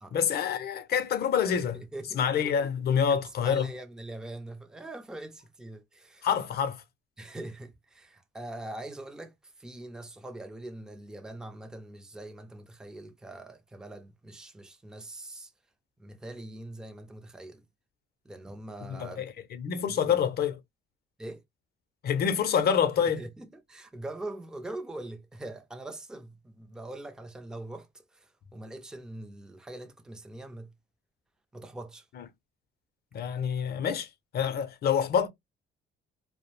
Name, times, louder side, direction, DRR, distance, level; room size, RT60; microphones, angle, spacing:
voice 1, 0.1-1.8 2.1-3.7 6.2-6.8 18.9-20.6 22.0-23.2 32.2-32.3 33.1-34.1 34.3-35.3, left 7 dB, 50° left, 0.6 m, -27 dB
voice 2, 1.5-2.3 3.1-3.2 3.4-6.3 7.2-15.5 16.0-17.7 18.2-19.2 19.9-20.2 21.2-21.4 23.1-30.7 31.5-32.1, right 1 dB, 5° right, 0.4 m, -43 dB
2.3 x 2.0 x 3.0 m
cardioid pair, 120°, 20 cm